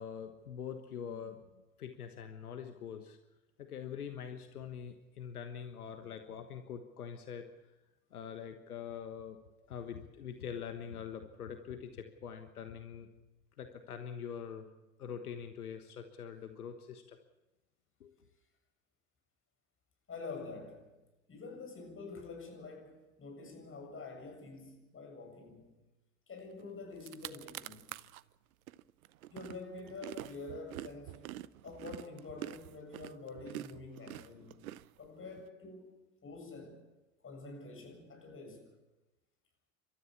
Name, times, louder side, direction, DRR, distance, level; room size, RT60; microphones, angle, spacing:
voice 1, 0.0-1.4 1.8-3.2 3.6-7.5 8.1-13.1 13.6-14.7 15.0-17.2 18.0-18.1, left 7 dB, 85° left, 1.4 m, -44 dB
voice 2, 20.1-20.9 21.3-25.7 26.3-27.9 29.3-31.2 31.6-34.6 35.0-35.9 36.2-36.8 37.2-38.7, left 3 dB, 30° left, 7.6 m, -47 dB
sound 1, 26.6-26.7 26.9-28.2 28.7-35.4, right 14 dB, 75° right, 0.7 m, -46 dB
29.5 x 13.5 x 7.2 m
hypercardioid pair, 75°, 43 cm